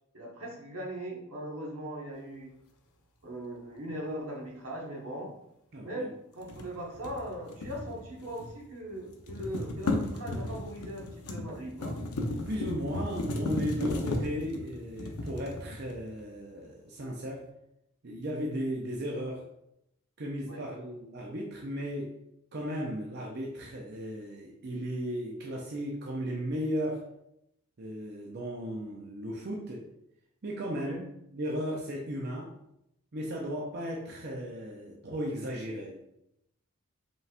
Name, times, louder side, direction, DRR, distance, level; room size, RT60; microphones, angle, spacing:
voice 1, 0.1-2.5 3.2-5.3 5.8-12.0 20.5-20.6 30.7-31.0, right 1 dB, 80° right, -2 dB, 1.2 m, -39 dB
voice 2, 5.7-6.1 12.5-17.4 18.0-19.4 20.2-22.2 22.5-27.0 27.8-29.9 30.4-31.0 31.3-32.5 33.1-36.0, equal, 50° right, -2 dB, 0.5 m, -35 dB
sound 1, 6.4-8.7 8.9-16.2, left 2 dB, 85° left, 0.7 m, -35 dB
5.3 x 3.4 x 2.4 m, 0.81 s
head